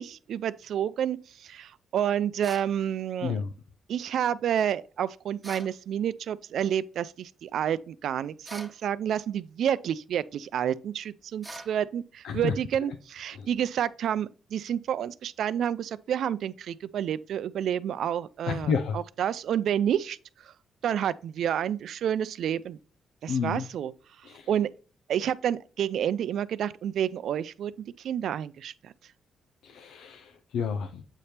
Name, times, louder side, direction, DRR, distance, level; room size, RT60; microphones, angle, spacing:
voice 1, 0.0-3.4 3.9-20.5 20.8-22.8 23.2-23.9 24.5-24.7 25.1-27.7 28.0-28.9, right 9 dB, 70° right, 0.4 m, -29 dB
sound 1, 2.4-2.7 5.4-5.7 8.4-8.8 11.4-11.7, right 2 dB, 5° right, 1.2 m, -42 dB
voice 2, 3.2-3.5 12.2-12.5 13.4-13.5 18.5-19.0 23.3-23.6 24.3-24.5 29.6-31.0, left 6 dB, 90° left, 0.6 m, -30 dB
8.2 x 3.4 x 4.3 m
cardioid pair, 135°, 0 cm